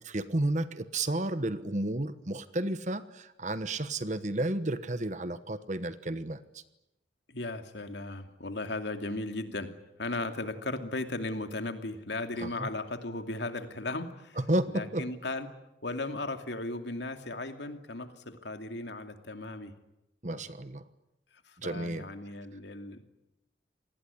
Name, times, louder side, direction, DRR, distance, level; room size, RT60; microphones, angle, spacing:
voice 1, 0.1-6.6 12.4-12.7 14.4-15.0 20.2-20.8 21.6-22.0, right 1 dB, 40° right, 13 dB, 1.2 m, -32 dB
voice 2, 7.3-14.4 14.7-15.5 15.8-19.7 20.3-20.4 21.5-23.0, left 2 dB, 80° left, 7 dB, 2.6 m, -36 dB
27.5 x 19.5 x 9.9 m, 0.93 s
head